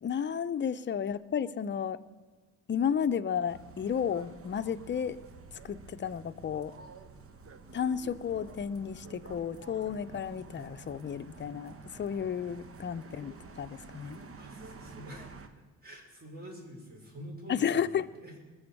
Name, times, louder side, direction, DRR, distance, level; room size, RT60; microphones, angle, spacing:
voice 1, 0.0-2.0 2.7-5.2 5.6-6.7 7.7-14.2 17.5-18.1, left 8 dB, 40° left, 10 dB, 0.7 m, -32 dB
sound 1, 3.5-15.5, right 4 dB, 45° right, 1.3 m, -50 dB
voice 2, 14.4-15.4 15.8-18.4, equal, 30° right, -1 dB, 5.8 m, -47 dB
21.0 x 7.2 x 7.1 m, 1.4 s
cardioid pair, 90°, 30 cm